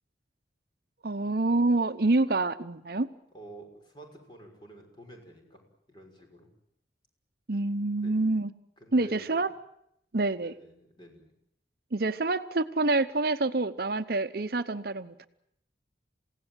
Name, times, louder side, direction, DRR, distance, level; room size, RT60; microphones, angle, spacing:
voice 1, 1.0-3.1 7.5-8.5 8.9-9.5 10.1-10.5 11.9-15.3, right 2 dB, 55° right, 11 dB, 0.9 m, -27 dB
voice 2, 3.3-5.6 5.9-6.5 8.0-8.2 8.8-9.4 10.4-11.3, right 1 dB, 25° left, 2 dB, 6.1 m, -49 dB
28.5 x 17.0 x 9.1 m, 0.76 s
head